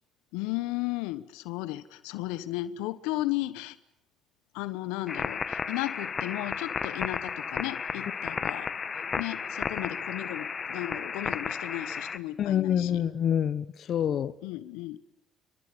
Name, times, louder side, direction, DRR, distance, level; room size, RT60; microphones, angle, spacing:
voice 1, 0.3-3.8 4.5-13.0 14.4-15.0, left 17 dB, 80° left, 1.2 m, -35 dB
sound 1, 5.1-12.2, left 6 dB, 40° left, 1.6 m, -33 dB
voice 2, 12.4-14.3, left 9 dB, 60° left, 1.2 m, -26 dB
29.5 x 23.5 x 8.6 m
hypercardioid pair, 60°, 0 cm